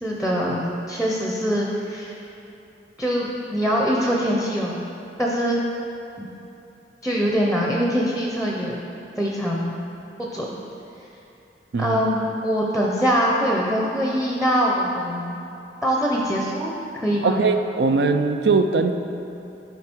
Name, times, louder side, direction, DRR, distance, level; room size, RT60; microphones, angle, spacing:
voice 1, 0.0-2.2 3.0-4.8 5.2-5.6 6.2-6.3 7.0-8.8 9.2-9.8 10.3-10.5 11.8-15.4 15.8-17.4, equal, ahead, -2 dB, 0.6 m, -23 dB
voice 2, 17.2-18.9, right 4 dB, 70° right, 7 dB, 0.5 m, -20 dB
11.0 x 4.7 x 4.5 m, 2.9 s
head